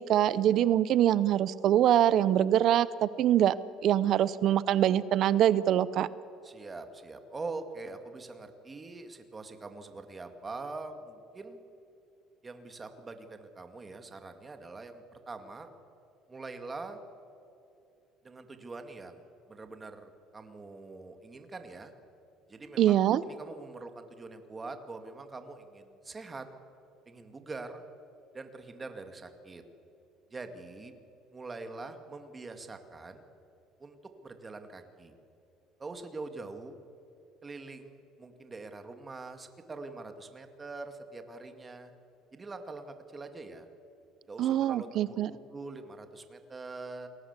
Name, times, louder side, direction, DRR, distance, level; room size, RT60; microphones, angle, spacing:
voice 1, 0.0-3.5 3.8-6.1 22.8-23.2 44.4-45.3, right 11 dB, 50° right, 17 dB, 0.6 m, -24 dB
voice 2, 6.4-11.6 12.4-15.7 16.3-17.0 18.2-21.9 22.5-26.5 27.1-27.8 28.3-29.6 30.3-30.9 31.3-33.2 33.8-34.0 34.2-35.1 35.8-36.8 37.4-41.9 42.3-43.7 44.3-47.1, right 3 dB, 15° right, 7 dB, 2.1 m, -44 dB
29.0 x 20.0 x 8.2 m, 2.7 s
cardioid pair, 155°, 0 cm